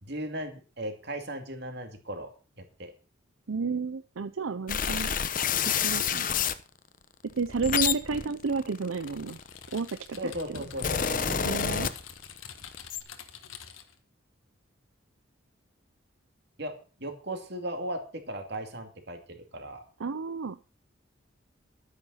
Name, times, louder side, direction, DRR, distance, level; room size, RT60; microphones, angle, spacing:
voice 1, 0.0-2.3 2.6-2.9 10.2-11.4 16.6-16.7 17.0-19.8, right 1 dB, 55° right, 5 dB, 2.6 m, -37 dB
voice 2, 3.5-5.1 5.8-6.3 7.3-9.4 9.7-10.6 11.4-11.9 20.0-20.6, right 4 dB, 80° right, 12 dB, 0.6 m, -31 dB
sound 1, 4.7-6.6 7.3-9.7 10.4-12.4 12.7-13.0, left 7 dB, 40° left, 0.8 m, -28 dB
Typing, 9.1-14.0, left 7 dB, 80° left, 1.7 m, -47 dB
12.0 x 9.5 x 5.6 m, 0.37 s
head